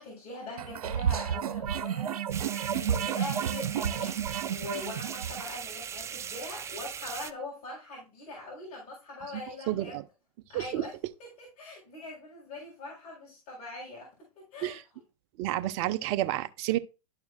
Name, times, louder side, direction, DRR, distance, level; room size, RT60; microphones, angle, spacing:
voice 1, 0.0-9.9 10.5-10.9 11.2-14.1 14.5-14.8, left 2 dB, 40° left, 4.1 m, -42 dB
sound 1, 0.6-5.5, right 9 dB, 85° right, 0.9 m, -31 dB
sound 2, 2.3-7.3, right 8 dB, 15° right, 0.4 m, -39 dB
voice 2, 9.7-10.0 10.5-10.8 14.6-14.8 15.4-16.8, right 14 dB, 50° right, 0.8 m, -30 dB
12.5 x 4.7 x 2.2 m
hypercardioid pair, 125°, 19 cm